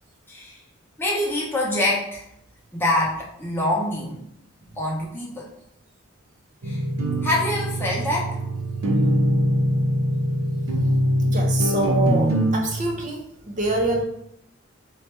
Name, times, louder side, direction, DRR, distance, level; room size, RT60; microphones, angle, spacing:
voice 1, 0.3-0.6 1.0-2.2 2.7-4.2 4.8-5.5 6.6-6.8 7.2-8.4, left 1 dB, 10° left, -5 dB, 0.9 m, -25 dB
sound 1, 6.6-12.6, equal, 85° right, 0.7 m, -22 dB
voice 2, 11.2-14.0, right 2 dB, 35° right, 0 dB, 0.8 m, -26 dB
3.2 x 2.7 x 4.5 m, 0.74 s
head